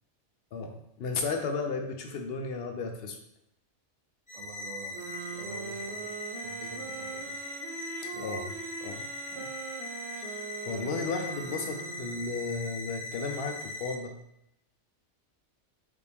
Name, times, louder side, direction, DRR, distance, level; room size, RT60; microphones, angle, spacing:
voice 1, 0.5-3.2 8.1-8.6 8.8-9.0 9.3-9.5 10.2-14.1, left 4 dB, 65° left, 4 dB, 0.7 m, -34 dB
sound 1, 4.3-13.9, left 2 dB, 5° left, 0.8 m, -40 dB
voice 2, 4.3-7.5, right 6 dB, 90° right, 4 dB, 1.0 m, -48 dB
sound 2, 4.9-12.6, right 6 dB, 65° right, 0.8 m, -42 dB
4.9 x 2.5 x 3.4 m, 0.80 s
omnidirectional pair, 1.2 m